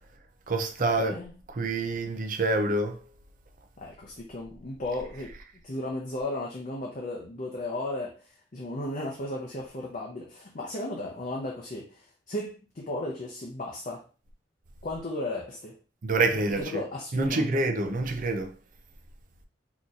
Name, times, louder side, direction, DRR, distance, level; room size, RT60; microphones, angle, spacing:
voice 1, 0.5-1.1 1.6-3.0 16.0-16.6 17.1-18.5, right 2 dB, 45° right, 0.5 m, -26 dB
voice 2, 1.0-1.3 3.8-5.3 5.6-14.0 14.8-15.8 16.5-17.6, left 1 dB, 40° left, 0.6 m, -35 dB
4.0 x 2.9 x 2.4 m
head